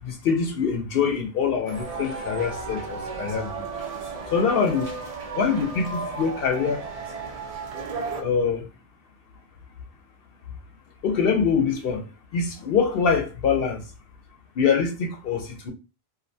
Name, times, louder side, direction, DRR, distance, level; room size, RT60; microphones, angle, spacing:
voice 1, 0.0-3.7 4.3-4.9 5.3-6.9 8.2-8.7 11.0-13.9 14.6-15.7, left 6 dB, 65° left, 0.7 m, -24 dB
sound 1, 1.7-8.2, right 4 dB, 50° right, 0.5 m, -34 dB
2.4 x 2.1 x 2.6 m
omnidirectional pair, 1.1 m